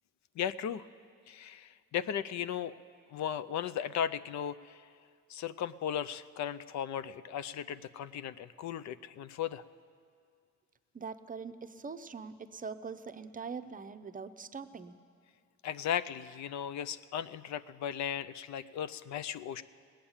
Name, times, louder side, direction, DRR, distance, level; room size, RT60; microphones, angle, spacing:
voice 1, 0.4-0.9 1.3-2.8 3.1-4.8 5.3-9.6 15.6-19.6, left 9 dB, 65° left, 14 dB, 0.5 m, -36 dB
voice 2, 10.9-14.9, right 5 dB, 30° right, 10 dB, 0.6 m, -43 dB
18.5 x 9.0 x 7.2 m, 2.2 s
cardioid pair, 90°, 30 cm